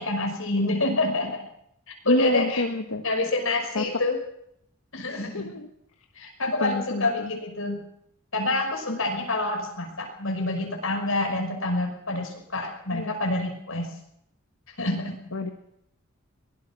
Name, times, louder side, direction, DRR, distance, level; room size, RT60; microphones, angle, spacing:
voice 1, 0.0-1.5 1.9-2.6 3.0-4.2 4.9-5.5 6.1-7.8 8.3-13.9 14.8-15.2, left 2 dB, 70° left, 3 dB, 6.0 m, -27 dB
voice 2, 2.0-3.0 3.7-3.9 5.1-5.7 6.6-7.3 8.9-9.0 12.9-13.2 15.3-15.5, left 2 dB, 85° left, 4 dB, 1.6 m, -28 dB
23.0 x 18.5 x 6.2 m, 0.74 s
head